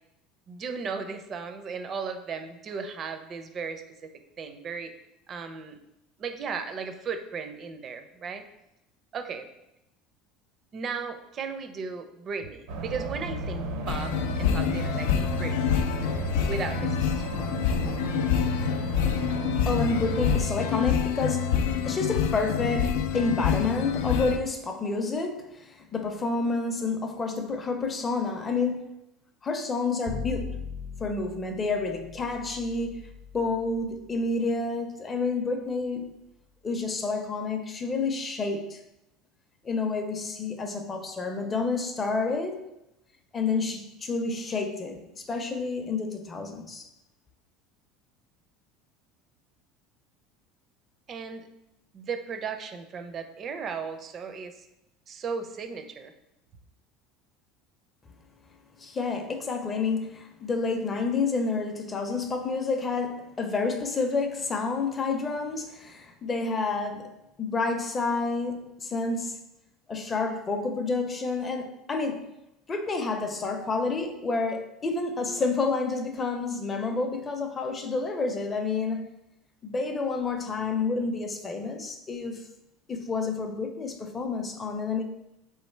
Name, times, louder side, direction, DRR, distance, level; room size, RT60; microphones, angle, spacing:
voice 1, 0.5-4.1 4.4-4.9 5.3-5.8 6.2-8.4 9.1-9.5 10.7-15.8 16.4-17.2 18.2-18.3 51.1-51.5 51.9-54.6 55.1-56.1, right 5 dB, 30° right, 0.4 m, -36 dB
sound 1, 12.7-20.4, right 2 dB, 75° right, 0.6 m, -33 dB
sound 2, 13.9-24.4, left 8 dB, 85° left, 0.3 m, -27 dB
voice 2, 19.7-21.5 21.8-28.8 29.4-30.6 31.0-33.0 33.3-36.1 36.6-38.8 39.6-42.6 43.3-46.9 58.8-67.1 67.4-69.4 69.9-72.3 72.7-79.1 79.6-82.4 82.9-85.0, left 3 dB, 20° left, 0.5 m, -29 dB
Bowed string instrument, 30.1-36.2, left 5 dB, 70° left, 0.7 m, -41 dB
3.5 x 3.1 x 4.4 m
cardioid pair, 150°, 0 cm